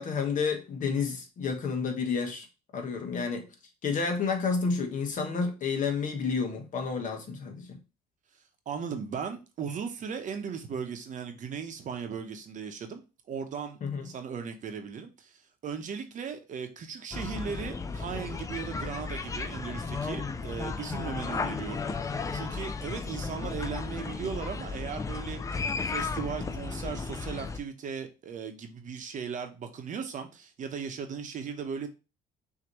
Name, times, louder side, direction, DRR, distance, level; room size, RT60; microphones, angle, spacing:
voice 1, 0.0-2.5 2.7-3.5 3.8-7.8 13.8-14.0, left 5 dB, 50° left, 1.3 m, -30 dB
voice 2, 8.7-13.0 13.3-31.9, right 6 dB, 50° right, 0.9 m, -37 dB
sound 1, 17.1-27.6, left 4 dB, 20° left, 0.4 m, -34 dB
6.1 x 2.9 x 3.0 m
cardioid pair, 110°, 17 cm